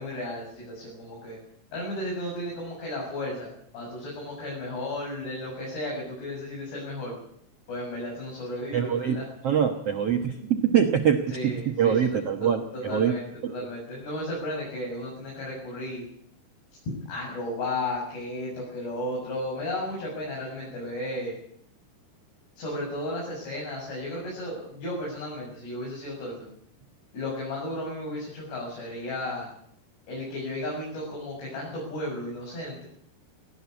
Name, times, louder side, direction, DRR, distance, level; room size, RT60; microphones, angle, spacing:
voice 1, 0.0-1.4 1.7-3.5 3.7-7.2 7.7-9.3 11.3-16.0 17.1-21.4 22.6-26.5 27.1-29.5 30.1-32.9, left 1 dB, 80° left, -4 dB, 9.6 m, -34 dB
voice 2, 8.7-9.2 9.4-13.1 13.4-13.5, right 8 dB, 85° right, 4 dB, 1.3 m, -24 dB
19.0 x 15.0 x 9.7 m, 0.67 s
omnidirectional pair, 4.9 m